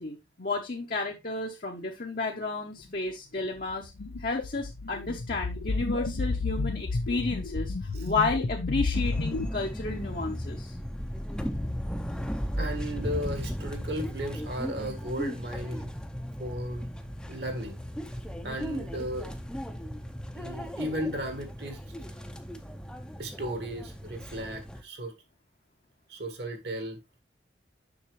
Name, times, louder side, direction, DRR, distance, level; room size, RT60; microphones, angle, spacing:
voice 1, 0.0-3.9 4.2-7.7 8.0-10.8, left 3 dB, 45° left, 0.9 m, -32 dB
sound 1, 3.7-9.5, left 3 dB, 90° left, 0.7 m, -31 dB
voice 2, 5.9-6.8 7.8-8.1 12.6-15.9 16.4-16.9 17.3-17.8 18.4-19.3 20.3-21.8 23.2-25.1 26.1-27.0, equal, 60° right, 1.7 m, -36 dB
sound 2, 8.9-24.8, equal, 5° left, 0.6 m, -36 dB
7.1 x 6.1 x 3.1 m
head